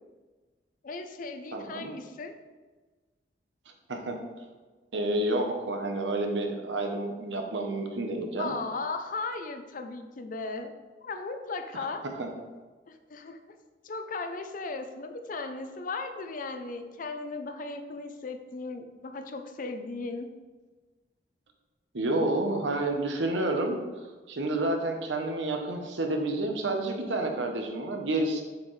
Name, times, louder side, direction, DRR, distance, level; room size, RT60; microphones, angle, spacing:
voice 1, 0.8-2.3 8.4-10.7 11.0-12.0 12.9-13.4 13.8-20.3, left 3 dB, 50° left, 7 dB, 0.5 m, -36 dB
voice 2, 1.5-1.9 3.9-4.2 4.9-8.6 12.2-12.3 21.9-23.8 24.3-28.4, right 2 dB, 90° right, 3 dB, 0.9 m, -29 dB
7.2 x 4.4 x 3.2 m, 1.3 s
head